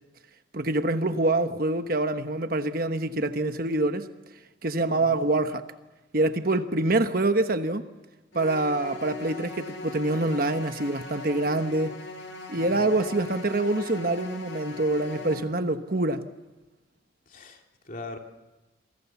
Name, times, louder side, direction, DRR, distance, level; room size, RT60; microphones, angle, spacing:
voice 1, 0.5-4.1 4.6-5.6 6.1-7.9 8.3-11.9 12.5-16.2, right 2 dB, 50° right, 1.2 m, -25 dB
voice 2, 4.9-5.3 12.5-13.0 17.3-18.2, left 2 dB, 45° left, 2.9 m, -42 dB
sound 1, 8.3-15.3, left 2 dB, 80° left, 5.2 m, -40 dB
28.0 x 23.5 x 7.2 m
head